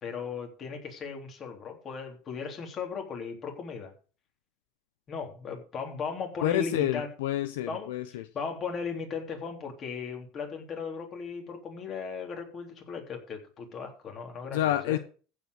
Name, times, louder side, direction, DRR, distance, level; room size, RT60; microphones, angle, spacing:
voice 1, 0.0-3.9 5.1-7.1 7.7-7.9 8.3-15.0, left 5 dB, 35° left, 3.5 m, -37 dB
voice 2, 6.4-8.3 14.5-15.0, left 12 dB, 85° left, 0.8 m, -28 dB
15.0 x 5.1 x 6.6 m
supercardioid pair, 115°, 0 cm